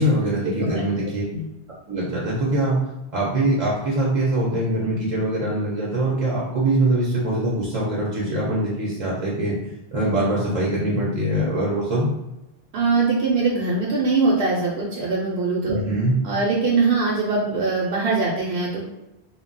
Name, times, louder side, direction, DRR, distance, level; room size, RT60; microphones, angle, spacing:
voice 1, 0.0-1.2 1.9-2.8 3.1-12.1 15.6-16.2, right 1 dB, 40° right, -5 dB, 0.6 m, -23 dB
voice 2, 12.7-15.8 16.2-18.8, right 3 dB, 75° right, -4 dB, 0.8 m, -22 dB
2.2 x 2.0 x 3.8 m, 0.93 s
omnidirectional pair, 1.0 m